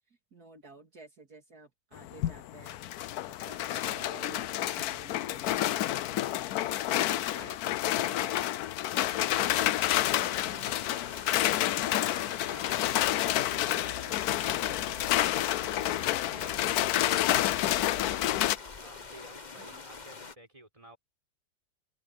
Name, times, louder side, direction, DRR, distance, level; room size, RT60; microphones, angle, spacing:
voice 1, 0.1-2.8 3.3-5.6 5.9-6.9 7.3-8.4 8.8-11.2 13.5-13.8 19.6-19.8, right 3 dB, 60° right, 3.1 m, -53 dB
sound 1, 2.0-18.6, left 14 dB, 70° left, 1.0 m, -29 dB
sound 2, 8.9-20.3, left 4 dB, 30° left, 1.1 m, -45 dB
voice 2, 11.5-18.3 18.8-21.0, right 1 dB, 20° right, 5.3 m, -53 dB
open air
omnidirectional pair, 1.8 m